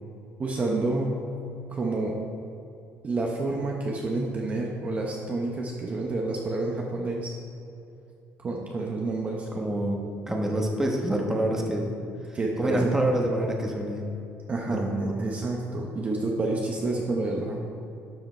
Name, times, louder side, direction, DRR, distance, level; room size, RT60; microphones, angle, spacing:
voice 1, 0.4-1.2 1.7-2.2 3.0-7.3 8.4-9.5 12.3-12.9 14.5-17.6, right 2 dB, 30° right, -1 dB, 0.9 m, -29 dB
voice 2, 9.5-12.0 12.3-14.1 14.7-15.1, right 1 dB, 10° right, 1 dB, 1.2 m, -27 dB
12.0 x 5.6 x 4.4 m, 2.7 s
cardioid pair, 130°, 5 cm